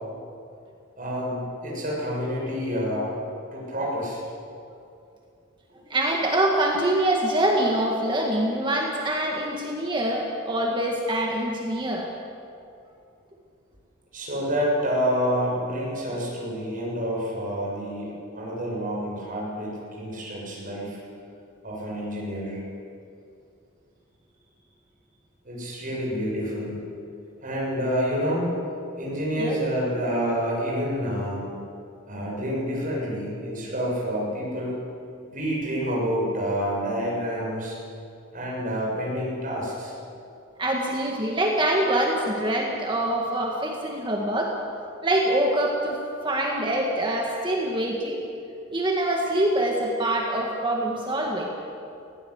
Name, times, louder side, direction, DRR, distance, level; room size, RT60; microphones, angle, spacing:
voice 1, 1.0-3.1 3.5-4.2 14.1-21.0 21.6-22.6 25.4-26.8 27.4-28.5 29.0-31.4 32.1-34.8 35.3-37.8 38.3-39.9, equal, 40° right, -4 dB, 7.2 m, -28 dB
voice 2, 5.9-12.1 29.4-29.6 40.6-44.6 45.0-48.2 48.7-51.5, right 1 dB, 25° right, 0 dB, 1.8 m, -25 dB
19.0 x 16.5 x 8.1 m, 2.5 s
head